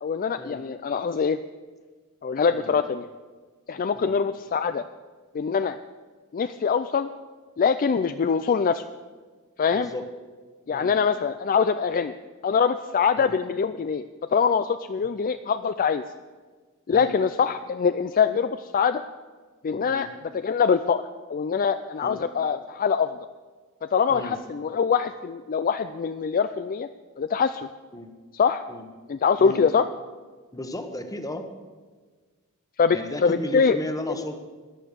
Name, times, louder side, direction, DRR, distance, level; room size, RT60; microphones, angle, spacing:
voice 1, 0.0-1.4 2.2-3.1 3.7-4.8 5.3-5.8 6.3-7.1 7.6-8.8 9.6-9.9 10.7-12.1 12.4-14.0 14.3-16.0 16.9-19.0 19.6-20.1 20.3-23.2 23.8-26.9 27.2-27.7 28.3-28.6 29.1-29.9 32.8-33.8, left 6 dB, 40° left, 11 dB, 0.4 m, -23 dB
voice 2, 9.7-10.1 10.7-10.9 13.2-13.3 16.9-17.1 19.8-20.1 22.0-22.2 24.1-24.4 27.9-28.1 28.7-28.9 29.4-29.6 30.5-31.5 32.9-34.4, left 1 dB, 15° left, 7 dB, 1.2 m, -34 dB
13.5 x 9.9 x 6.9 m, 1.4 s
head